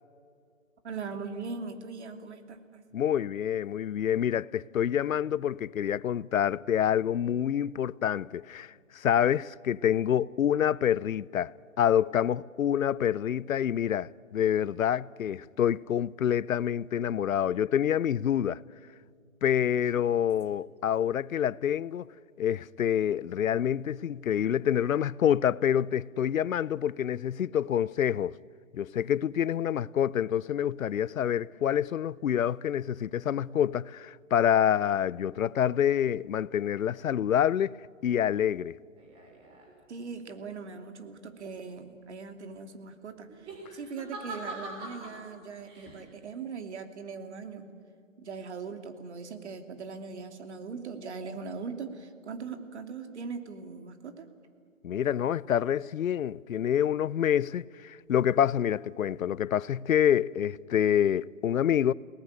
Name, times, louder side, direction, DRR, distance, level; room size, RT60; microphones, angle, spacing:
voice 1, 0.8-2.8 20.5-20.6 39.9-47.7 48.2-54.3, right 5 dB, 55° right, 2.9 m, -40 dB
voice 2, 2.9-18.6 19.4-22.1 22.4-28.4 28.7-37.8 38.0-38.8 54.8-61.9, left 9 dB, 85° left, 0.7 m, -27 dB
sound 1, 39.0-39.7 43.3-45.2 45.6-46.0, right 2 dB, 15° right, 3.5 m, -42 dB
28.5 x 18.5 x 9.7 m
hypercardioid pair, 165°, 40 cm